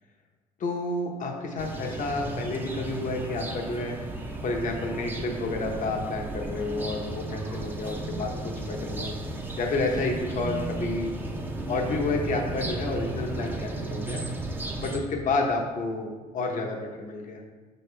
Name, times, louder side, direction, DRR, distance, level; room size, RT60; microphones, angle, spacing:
voice 1, 0.6-3.9 4.4-9.1 9.6-11.1 11.7-14.2 14.8-17.4, left 2 dB, 50° left, 1 dB, 0.9 m, -30 dB
sound 1, 1.6-15.0, right 2 dB, 10° right, 0.8 m, -34 dB
6.4 x 6.3 x 3.3 m, 1.4 s
cardioid pair, 110°, 17 cm